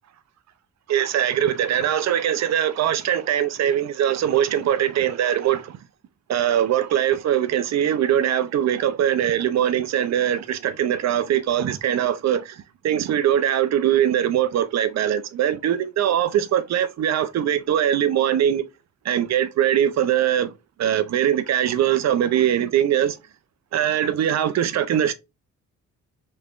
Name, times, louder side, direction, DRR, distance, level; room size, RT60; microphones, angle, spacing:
voice 1, 0.9-5.7 6.3-12.4 12.8-18.6 19.1-20.5 20.8-23.1 23.7-25.1, right 10 dB, 60° right, 0.6 m, -21 dB
3.3 x 3.2 x 2.4 m
cardioid pair, 90°, 30 cm